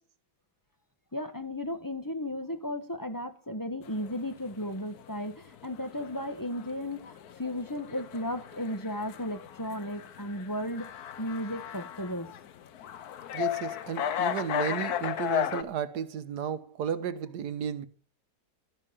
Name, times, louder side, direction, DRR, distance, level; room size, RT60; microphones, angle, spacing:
voice 1, 1.1-10.9 11.2-12.3, left 1 dB, 15° left, 1.1 m, -35 dB
sound 1, 3.8-15.6, left 10 dB, 65° left, 1.3 m, -35 dB
voice 2, 13.3-17.9, right 8 dB, 70° right, 1.5 m, -33 dB
12.5 x 11.5 x 7.2 m
omnidirectional pair, 1.9 m